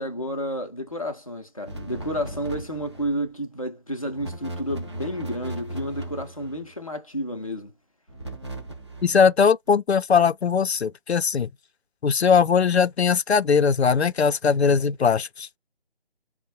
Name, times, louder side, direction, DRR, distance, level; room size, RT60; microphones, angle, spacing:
voice 1, 0.0-7.7, equal, 35° left, 0.5 m, -31 dB
sound 1, 1.6-3.2 4.1-6.7 8.1-9.3, right 1 dB, 25° right, 0.8 m, -37 dB
voice 2, 9.0-11.5 12.0-15.6, left 6 dB, 85° left, 0.5 m, -20 dB
4.3 x 2.1 x 2.6 m
figure-of-eight pair, 160°, 31 cm